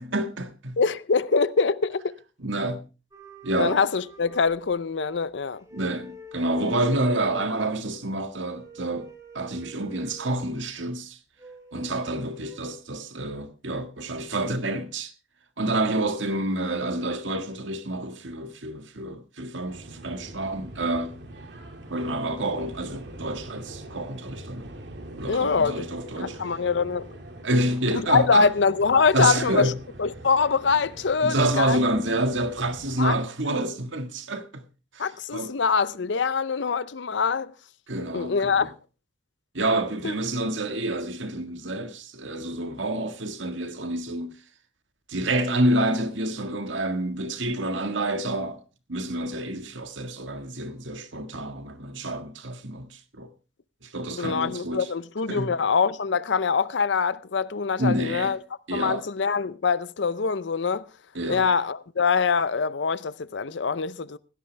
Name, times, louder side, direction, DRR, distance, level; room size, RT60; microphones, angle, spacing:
voice 1, 0.0-0.8 2.4-2.9 3.4-3.8 5.7-9.1 9.3-11.2 11.7-15.1 15.6-21.2 21.9-24.8 25.2-26.4 27.4-28.5 29.1-29.8 31.2-34.6 34.9-35.5 37.9-38.7 39.5-44.3 45.1-48.6 48.9-53.3 53.8-54.9 55.3-55.5 57.8-58.4 58.7-59.0 61.1-61.5, right 1 dB, 80° right, 1.7 m, -28 dB
voice 2, 0.8-2.1 3.6-5.6 25.3-25.9 26.2-27.1 27.9-29.7 30.0-31.8 33.0-33.1 35.0-37.5 38.1-38.7 40.0-40.1 54.1-58.4 58.7-60.8 61.3-64.2, left 5 dB, 70° left, 0.6 m, -24 dB
sound 1, 3.1-5.2 5.5-7.6 8.4-10.4 11.4-12.7, equal, 15° right, 2.6 m, -46 dB
sound 2, 19.7-33.1, right 1 dB, 65° right, 2.3 m, -43 dB
16.5 x 13.5 x 3.3 m
head